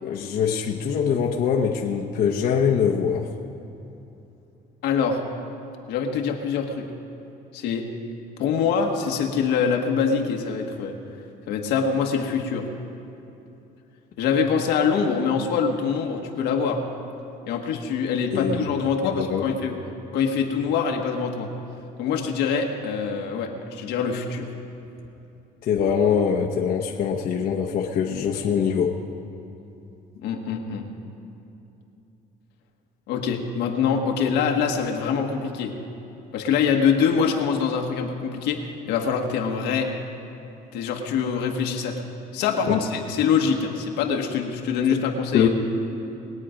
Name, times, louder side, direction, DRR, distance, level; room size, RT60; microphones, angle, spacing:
voice 1, 0.0-3.3 18.3-18.7 19.0-19.4 25.6-29.0 42.7-42.8 45.3-45.5, left 7 dB, 60° left, 0 dB, 0.9 m, -23 dB
voice 2, 4.8-5.2 5.9-6.9 7.5-7.8 8.4-11.0 11.5-12.6 14.2-16.8 17.5-19.7 20.1-21.5 22.0-24.5 30.2-30.9 33.1-35.7 36.3-38.6 38.9-39.9 40.7-42.1 42.3-45.5, left 6 dB, 90° left, 2 dB, 1.4 m, -24 dB
21.0 x 8.5 x 5.1 m, 2.9 s
cardioid pair, 110°, 17 cm